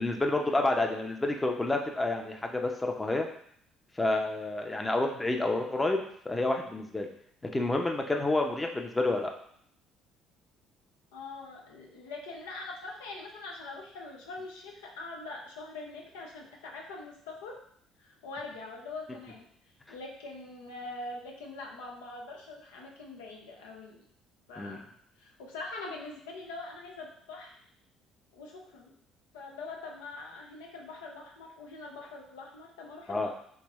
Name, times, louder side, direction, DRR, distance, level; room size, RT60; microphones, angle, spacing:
voice 1, 0.0-3.3 4.0-7.1 7.5-9.3 24.6-24.8 33.1-33.3, left 2 dB, 20° left, 3 dB, 0.6 m, -29 dB
voice 2, 11.1-17.6 18.0-19.5 19.9-24.0 24.5-24.8 25.2-27.5 28.3-28.9 29.3-33.3, left 3 dB, 85° left, -1 dB, 0.6 m, -43 dB
3.4 x 2.6 x 3.0 m, 0.66 s
hypercardioid pair, 60°, 0 cm